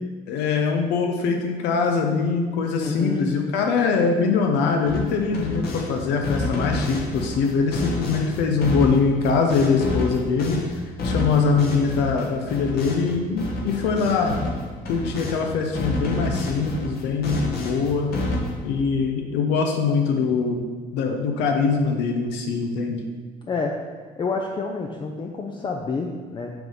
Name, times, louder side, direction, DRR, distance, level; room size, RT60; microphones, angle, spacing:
voice 1, 0.3-10.6 11.0-14.4 14.9-18.1 18.6-20.6 20.9-23.0, left 5 dB, 90° left, 3 dB, 0.7 m, -22 dB
voice 2, 2.8-3.3 23.5-23.8 24.2-26.5, left 4 dB, 30° left, 1 dB, 0.5 m, -28 dB
sound 1, 4.8-5.9 6.2-15.4 15.7-18.7, left 2 dB, 65° left, 1.3 m, -29 dB
5.8 x 3.5 x 5.4 m, 1.5 s
cardioid pair, 110°, 17 cm